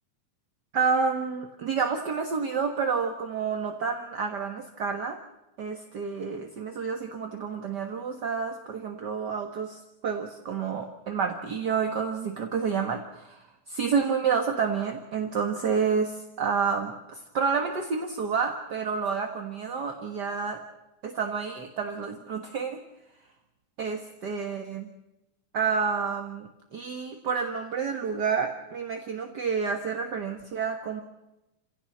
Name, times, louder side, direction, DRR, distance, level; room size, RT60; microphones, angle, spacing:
voice 1, 0.7-5.2 5.6-20.6 21.0-22.8 23.8-24.9 25.5-31.0, right 5 dB, 45° right, 4 dB, 1.6 m, -29 dB
28.0 x 17.0 x 7.4 m, 0.94 s
omnidirectional pair, 3.7 m